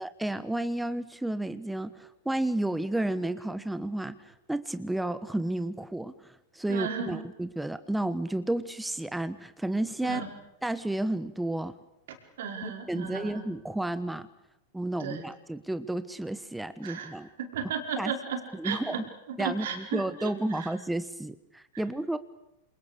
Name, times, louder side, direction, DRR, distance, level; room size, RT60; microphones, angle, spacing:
voice 1, 0.0-10.2 10.6-11.8 12.6-14.3 14.7-17.3 18.0-18.1 18.5-19.1 19.4-22.2, right 1 dB, 5° right, 12 dB, 1.2 m, -32 dB
voice 2, 6.7-7.2 10.0-10.2 12.4-13.4 15.0-15.2 16.8-19.0 19.4-20.7, right 6 dB, 60° right, 3 dB, 5.1 m, -35 dB
28.5 x 27.5 x 6.7 m, 0.90 s
figure-of-eight pair, 90°, 0 cm